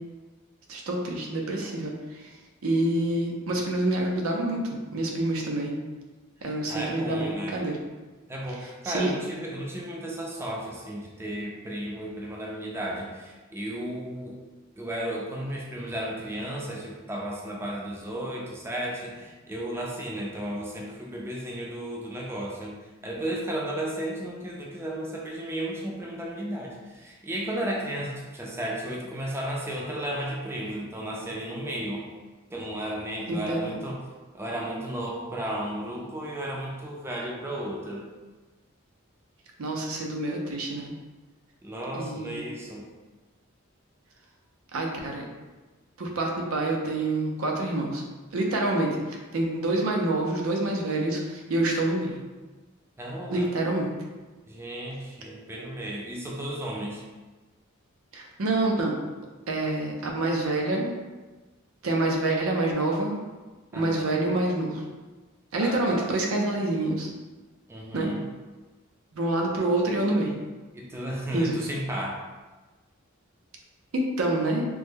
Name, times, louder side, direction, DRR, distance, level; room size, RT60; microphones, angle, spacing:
voice 1, 0.7-2.2 2.6-4.6 4.9-5.7 6.4-7.8 8.8-9.1 33.3-33.7 39.6-40.9 41.9-42.5 44.7-45.2 46.0-48.0 48.3-52.2 53.3-53.9 58.1-58.9 59.5-60.9 61.8-63.2 63.7-64.8 65.5-67.1 67.9-68.2 69.1-70.4 71.3-71.7 73.9-74.7, right 2 dB, 85° right, 0 dB, 0.5 m, -27 dB
voice 2, 6.7-7.6 8.3-14.4 14.8-22.7 23.0-32.1 32.5-34.0 34.3-38.1 41.6-42.9 53.0-53.5 54.5-57.0 63.7-64.3 65.6-66.1 67.7-68.2 70.7-72.2, right 1 dB, 10° right, -2 dB, 0.4 m, -34 dB
3.1 x 2.1 x 3.4 m, 1.2 s
head